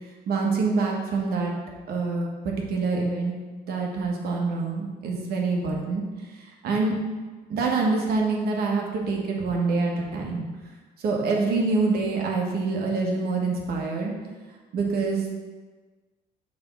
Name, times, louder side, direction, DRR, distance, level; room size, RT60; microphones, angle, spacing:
voice 1, 0.3-1.5 1.9-3.3 3.7-6.0 6.3-7.0 7.5-10.4 11.0-14.1 14.7-15.3, right 3 dB, 65° right, 0 dB, 1.4 m, -26 dB
6.7 x 3.5 x 5.5 m, 1.3 s
cardioid pair, 110°, 17 cm